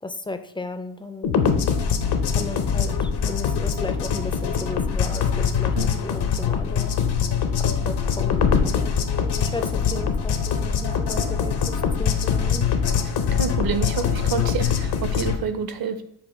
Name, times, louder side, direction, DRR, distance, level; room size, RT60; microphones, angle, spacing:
voice 1, 0.0-1.5 2.2-7.0 7.6-12.7, left 2 dB, 10° left, 8 dB, 0.3 m, -35 dB
sound 1, 1.2-15.4, left 6 dB, 60° left, 0.7 m, -23 dB
voice 2, 13.1-16.0, right 6 dB, 55° right, 9 dB, 0.7 m, -28 dB
5.5 x 2.2 x 4.2 m, 0.72 s
supercardioid pair, 50°, 45 cm